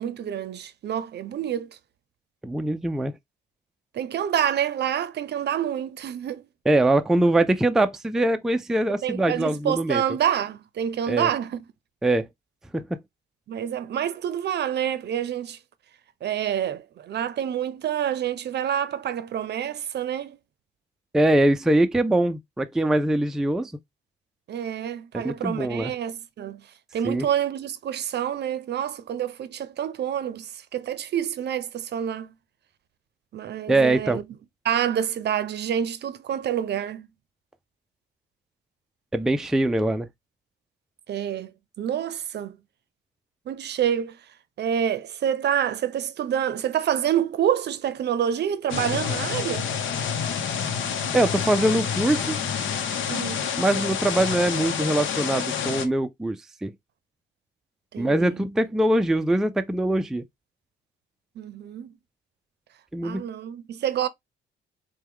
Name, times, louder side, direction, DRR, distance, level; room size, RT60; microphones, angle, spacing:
voice 1, 0.0-1.8 3.9-6.5 9.0-11.6 13.5-15.6 16.2-20.4 24.5-26.6 26.9-32.3 33.3-34.2 34.6-37.1 41.1-41.5 41.8-42.6 43.5-44.2 44.6-49.7 53.1-53.4 57.9-58.4 61.4-62.0 63.0-64.1, right 9 dB, 60° right, 0.6 m, -27 dB
voice 2, 2.4-3.1 6.7-10.0 11.1-11.3 12.0-12.3 12.7-12.8 21.1-23.7 25.1-25.9 27.0-27.3 33.7-34.2 39.1-40.1 51.1-52.4 53.6-56.7 58.0-60.2 62.9-63.3, right 1 dB, ahead, 0.4 m, -23 dB
sound 1, 48.7-55.9, left 7 dB, 80° left, 0.8 m, -28 dB
4.4 x 2.2 x 3.5 m
cardioid pair, 90°, 20 cm